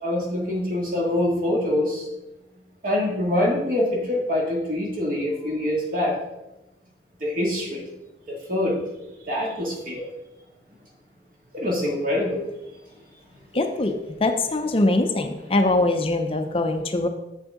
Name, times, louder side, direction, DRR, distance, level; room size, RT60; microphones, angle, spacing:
voice 1, 0.0-2.0 2.8-6.1 7.2-7.8 8.3-8.8 9.3-10.0 11.5-12.4, left 1 dB, 50° right, -2 dB, 2.1 m, -24 dB
voice 2, 13.5-17.1, left 2 dB, 30° left, 6 dB, 0.5 m, -22 dB
8.0 x 7.1 x 3.7 m, 0.97 s
head